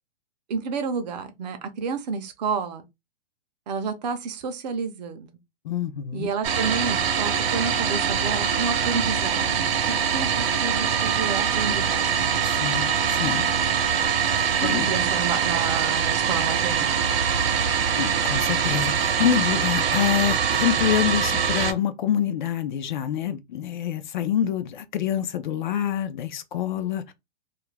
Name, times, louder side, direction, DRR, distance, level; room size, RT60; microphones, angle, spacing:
voice 1, 0.5-2.8 3.7-5.3 6.1-12.3 14.6-16.9, right 5 dB, 45° right, 0.5 m, -30 dB
voice 2, 5.6-6.3 12.4-13.5 14.3-14.9 18.0-27.1, left 10 dB, 50° left, 0.4 m, -26 dB
sound 1, 6.4-21.7, right 7 dB, 70° right, 0.8 m, -23 dB
2.4 x 2.1 x 3.1 m
hypercardioid pair, 150°, 31 cm